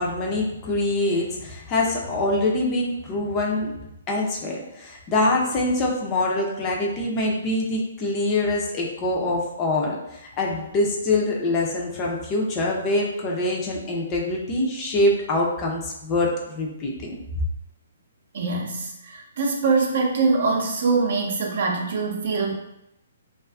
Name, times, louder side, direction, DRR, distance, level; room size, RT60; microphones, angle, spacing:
voice 1, 0.0-3.7 4.1-17.2, left 2 dB, 25° left, -2 dB, 0.4 m, -24 dB
voice 2, 18.3-22.5, right 4 dB, 55° right, 0 dB, 0.5 m, -23 dB
2.5 x 2.4 x 2.2 m, 0.84 s
hypercardioid pair, 155°, 0 cm